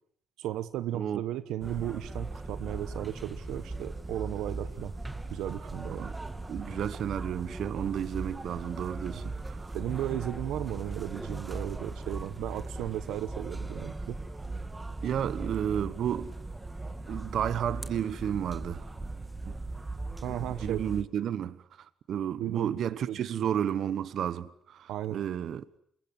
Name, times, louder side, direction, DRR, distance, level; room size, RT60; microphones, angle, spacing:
voice 1, 0.4-4.9 5.3-6.1 9.2-9.3 9.7-14.2 20.2-20.8 22.4-23.3 24.9-25.2, right 12 dB, 90° right, 1.1 m, -35 dB
sound 1, 1.6-21.0, right 2 dB, 15° right, 2.5 m, -39 dB
voice 2, 6.5-9.6 15.0-16.3 17.1-18.9 19.5-19.6 20.6-25.6, right 9 dB, 65° right, 1.2 m, -32 dB
27.5 x 22.5 x 9.6 m
cardioid pair, 90°, 0 cm